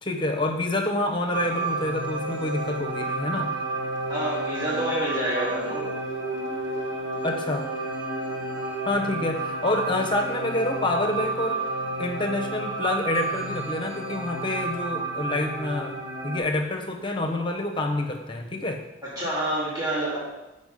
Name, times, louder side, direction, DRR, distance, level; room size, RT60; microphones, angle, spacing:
voice 1, 0.0-3.6 7.2-7.7 8.8-11.6 12.0-16.0 16.2-18.8, left 2 dB, 25° left, 3 dB, 0.8 m, -27 dB
sound 1, 1.3-16.4, right 2 dB, 75° right, 2.0 m, -31 dB
voice 2, 4.1-5.9 19.0-20.2, right 1 dB, 20° right, -7 dB, 2.5 m, -28 dB
8.0 x 5.4 x 5.3 m, 1.0 s
head